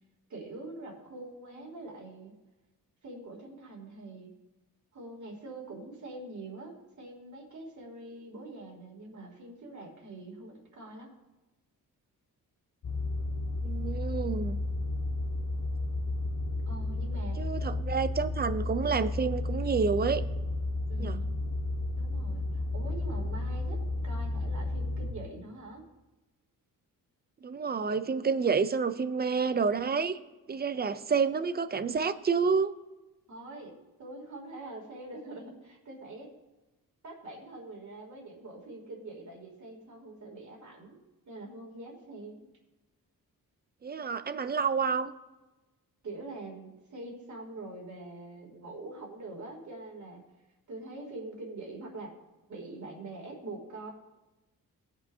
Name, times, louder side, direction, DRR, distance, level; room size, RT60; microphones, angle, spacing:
voice 1, 0.3-2.3 3.0-4.3 4.9-11.1 16.7-17.4 20.9-21.3 22.0-25.8 33.3-36.3 37.0-41.0 41.2-42.5 46.0-50.2 50.7-52.1 52.5-53.9, right 2 dB, 55° right, 0 dB, 2.9 m, -44 dB
sound 1, 12.8-25.1, left 2 dB, 55° left, 1.3 m, -32 dB
voice 2, 13.6-14.6 17.4-20.2 21.0-21.2 27.4-30.2 30.5-32.7 43.8-45.1, right 5 dB, 25° right, 12 dB, 0.5 m, -29 dB
19.0 x 8.2 x 2.8 m, 1.1 s
wide cardioid pair, 130°, 36 cm